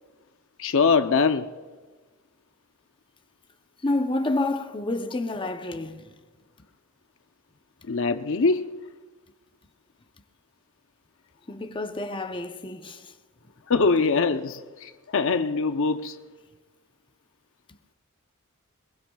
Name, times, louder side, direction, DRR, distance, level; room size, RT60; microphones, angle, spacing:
voice 1, 0.6-1.5 7.8-8.7 13.7-16.2, left 4 dB, 65° left, 0.7 m, -23 dB
voice 2, 3.8-6.1 11.5-13.1, left 2 dB, 25° left, 0.7 m, -29 dB
22.0 x 21.5 x 2.3 m
head